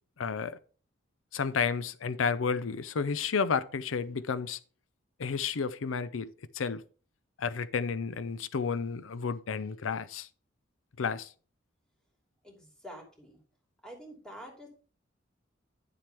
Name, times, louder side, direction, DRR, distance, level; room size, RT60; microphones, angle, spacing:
voice 1, 0.2-0.6 1.3-4.6 5.2-6.3 6.5-6.8 7.4-10.3 11.0-11.3, left 5 dB, 85° left, 0.5 m, -31 dB
voice 2, 12.4-13.4 13.8-14.7, equal, 5° left, 2.8 m, -47 dB
10.5 x 7.4 x 3.4 m
head